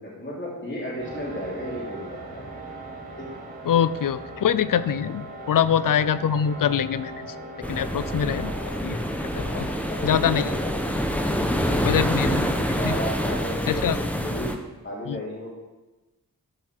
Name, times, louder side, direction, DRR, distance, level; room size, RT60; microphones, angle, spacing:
voice 1, 0.0-2.4 3.2-3.4 4.7-4.8 9.4-10.7 11.6-12.4 12.7-14.5 14.8-15.6, equal, 35° left, -6 dB, 3.3 m, -34 dB
sound 1, 1.0-11.0, right 2 dB, 25° right, 2.8 m, -40 dB
voice 2, 3.7-7.3 7.7-8.5 8.8-9.7 10.0-10.5 11.8-12.5 12.8-13.0 13.7-14.0 15.1-15.2, left 8 dB, 70° left, 16 dB, 0.5 m, -24 dB
sound 2, 7.6-14.6, equal, 5° left, 0.9 m, -26 dB
12.5 x 5.7 x 4.6 m, 1.1 s
wide cardioid pair, 80°, 35 cm